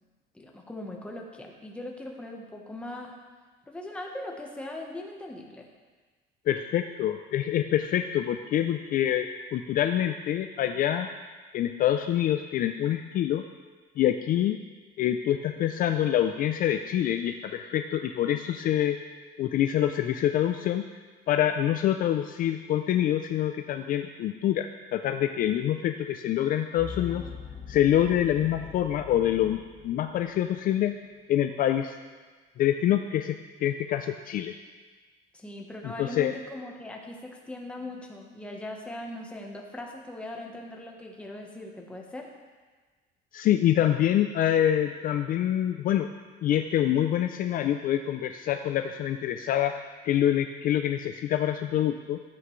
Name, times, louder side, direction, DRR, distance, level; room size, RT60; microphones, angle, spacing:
voice 1, 0.3-3.2 3.7-5.7 35.3-42.3, left 1 dB, 5° left, 0 dB, 1.0 m, -40 dB
voice 2, 6.5-11.1 11.5-13.4 14.0-14.6 15.0-19.0 19.4-20.8 21.3-27.3 27.7-31.0 31.3-32.0 32.6-34.5 35.8-36.3 43.3-46.1 46.4-49.7 50.0-52.2, left 11 dB, 50° left, 7 dB, 0.4 m, -26 dB
sound 1, 26.8-30.8, left 6 dB, 25° left, 1.8 m, -42 dB
13.0 x 8.1 x 3.1 m, 1.4 s
cardioid pair, 165°, 19 cm